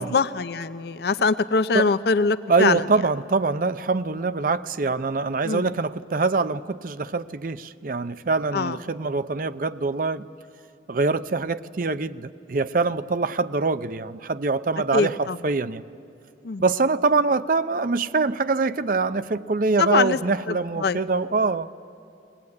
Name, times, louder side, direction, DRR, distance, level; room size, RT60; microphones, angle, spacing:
voice 1, 0.0-2.8 5.4-5.7 8.5-8.8 14.9-15.4 16.4-16.6 19.8-20.2 20.5-21.0, left 4 dB, 60° left, 13 dB, 0.5 m, -23 dB
voice 2, 2.5-10.3 10.9-15.8 16.6-21.7, right 3 dB, 50° right, 13 dB, 0.6 m, -24 dB
21.0 x 19.0 x 9.6 m, 2.8 s
head